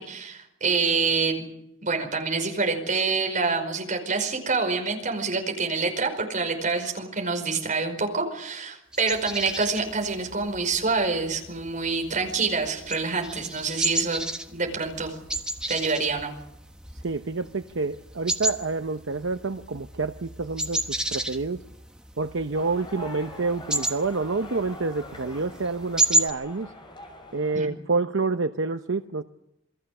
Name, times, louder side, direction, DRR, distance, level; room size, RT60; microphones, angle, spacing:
voice 1, 0.0-1.5 1.8-14.2 14.5-15.2 15.7-16.3 27.5-27.7, right 4 dB, 40° right, 4 dB, 5.1 m, -26 dB
sound 1, 8.9-26.3, right 1 dB, 5° right, 1.3 m, -32 dB
voice 2, 16.9-21.6 22.2-26.7 27.3-29.2, right 3 dB, 65° right, 8 dB, 0.8 m, -28 dB
sound 2, 22.5-27.6, left 1 dB, 25° left, 6.3 m, -43 dB
28.0 x 21.0 x 6.7 m, 0.84 s
head